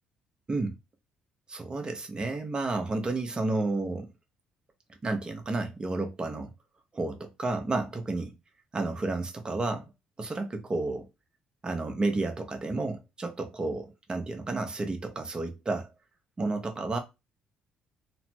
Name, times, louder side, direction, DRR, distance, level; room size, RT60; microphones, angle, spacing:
voice 1, 1.5-4.1 5.0-6.5 6.9-8.3 8.7-9.9 10.2-11.1 11.6-15.9 16.4-17.0, right 2 dB, 30° right, 0.8 m, -31 dB
3.1 x 2.0 x 2.9 m
supercardioid pair, 75°, 3 cm